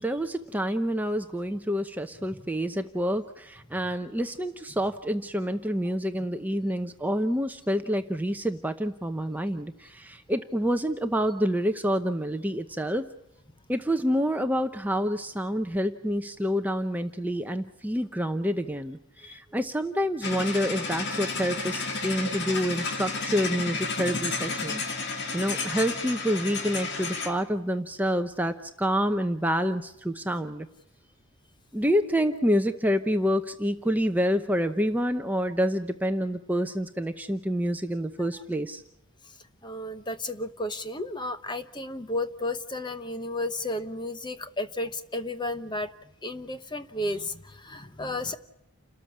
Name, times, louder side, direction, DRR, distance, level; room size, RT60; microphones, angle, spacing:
voice 1, 0.0-13.0 13.7-30.7 31.7-38.8, equal, 5° right, 7 dB, 0.8 m, -28 dB
sound 1, 20.2-27.4, left 3 dB, 50° left, 2.5 m, -32 dB
voice 2, 39.6-45.9 46.2-48.3, left 1 dB, 20° left, 10 dB, 1.0 m, -33 dB
29.5 x 13.5 x 8.6 m, 0.85 s
head